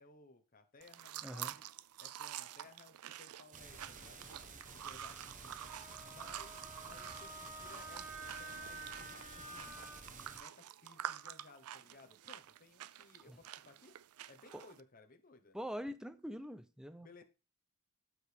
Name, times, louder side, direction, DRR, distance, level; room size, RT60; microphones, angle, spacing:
voice 1, 0.0-1.6 2.0-4.4 4.8-5.6 6.0-8.1 8.4-9.8 10.1-13.9 14.3-15.6 17.0-17.2, left 3 dB, 40° left, 1.2 m, -60 dB
sound 1, 0.8-14.8, right 11 dB, 85° right, 0.4 m, -48 dB
voice 2, 1.2-1.5 13.3-13.4 15.5-17.2, equal, 5° right, 0.5 m, -44 dB
sound 2, 3.5-10.4, right 5 dB, 35° right, 1.0 m, -52 dB
Wind instrument woodwind instrument, 5.6-10.0, right 2 dB, 20° right, 2.6 m, -50 dB
12.5 x 4.8 x 3.5 m
head